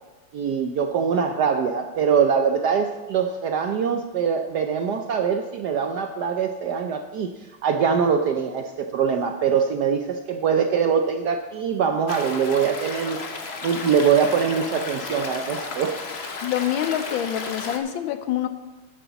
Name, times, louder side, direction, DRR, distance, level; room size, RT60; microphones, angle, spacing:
voice 1, 0.3-7.3 7.6-13.2 13.6-16.0, right 6 dB, 70° right, 6 dB, 1.0 m, -23 dB
Stream, 12.1-17.8, left 4 dB, 45° left, 0.9 m, -33 dB
voice 2, 16.4-18.5, left 11 dB, 75° left, 10 dB, 1.3 m, -26 dB
13.0 x 9.9 x 4.0 m, 1.2 s
omnidirectional pair, 2.3 m